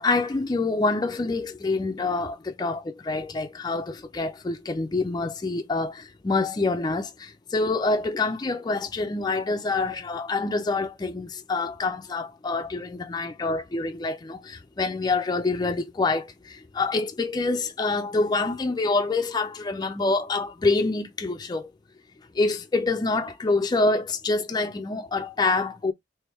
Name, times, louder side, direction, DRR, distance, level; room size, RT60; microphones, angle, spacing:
voice 1, 0.0-21.7 22.3-25.9, left 3 dB, 20° left, 0.4 m, -26 dB
3.4 x 3.0 x 3.1 m
head